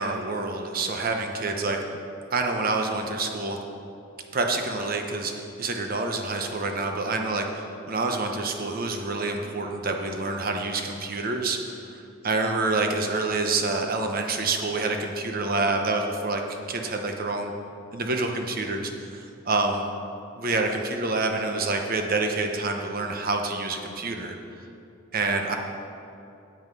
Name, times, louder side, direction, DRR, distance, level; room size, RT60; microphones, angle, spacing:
voice 1, 0.0-1.8 2.3-3.6 4.3-17.5 17.9-19.9 20.4-24.4 25.1-25.6, right 3 dB, 50° right, 3 dB, 0.9 m, -27 dB
9.3 x 8.0 x 5.4 m, 2.6 s
head